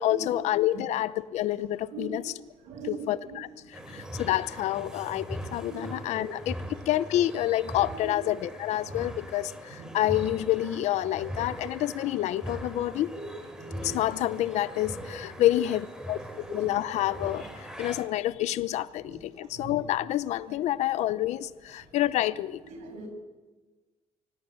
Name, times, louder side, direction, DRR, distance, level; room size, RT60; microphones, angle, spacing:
voice 1, 0.0-2.3 2.8-6.6 6.9-13.1 13.8-16.2 16.5-22.6, left 14 dB, 75° left, 17 dB, 0.8 m, -28 dB
voice 2, 2.6-3.4 3.7-4.3 5.6-5.8 6.1-6.3 6.6-6.7 9.8-10.0 13.1-13.2 13.6-13.9 15.4-15.5 16.1-16.7 19.1-19.2 19.6-19.7 22.8-23.1, right 4 dB, 90° right, 4 dB, 7.4 m, -42 dB
sound 1, 3.7-18.1, equal, 5° right, 3.2 m, -41 dB
24.5 x 17.5 x 8.7 m, 1.2 s
cardioid pair, 125°, 12 cm